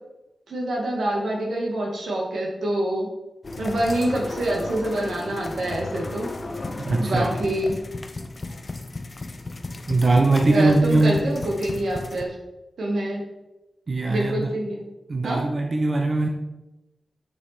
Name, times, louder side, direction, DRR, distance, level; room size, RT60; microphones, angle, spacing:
voice 1, 0.5-3.1 3.6-6.3 7.0-7.8 10.5-12.3 12.8-13.2 14.1-14.9 15.2-15.4, right 1 dB, 80° right, -1 dB, 2.0 m, -26 dB
sound 1, 3.4-12.2, left 2 dB, 30° left, 0.6 m, -34 dB
voice 2, 6.8-7.4 9.9-11.2 13.9-14.5 15.1-16.3, right 2 dB, 35° right, 2 dB, 0.8 m, -21 dB
7.1 x 7.0 x 4.4 m, 0.98 s
wide cardioid pair, 160°, 0 cm